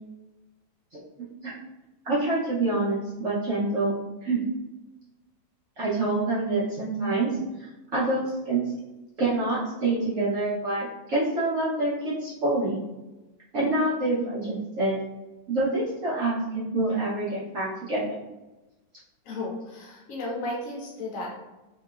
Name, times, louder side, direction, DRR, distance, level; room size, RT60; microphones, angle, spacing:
voice 1, 2.0-3.9 4.2-4.4 5.8-8.7 9.2-12.8 13.5-15.0 15.5-18.2, right 2 dB, 70° right, -8 dB, 0.7 m, -26 dB
voice 2, 19.2-21.3, left 2 dB, 60° left, -3 dB, 0.9 m, -34 dB
3.1 x 2.9 x 2.2 m, 1.1 s
omnidirectional pair, 2.1 m